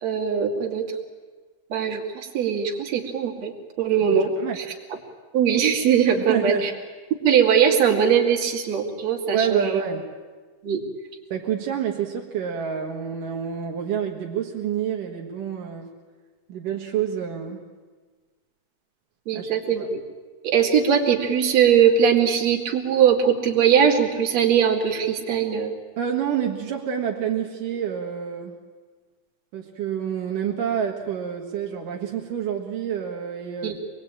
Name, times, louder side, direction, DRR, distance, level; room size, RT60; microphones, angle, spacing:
voice 1, 0.0-0.9 1.7-3.5 3.8-4.3 4.6-4.7 5.3-6.7 7.2-9.8 10.6-10.8 19.3-20.0 20.4-25.7 33.6-33.7, right 8 dB, 55° right, 1 dB, 3.3 m, -20 dB
voice 2, 4.2-4.6 6.2-6.7 9.3-10.0 11.3-15.9 16.5-17.6 19.3-19.9 26.0-28.6 29.5-33.8, right 8 dB, 75° right, -1 dB, 3.1 m, -28 dB
25.0 x 21.0 x 8.9 m, 1.4 s
omnidirectional pair, 3.8 m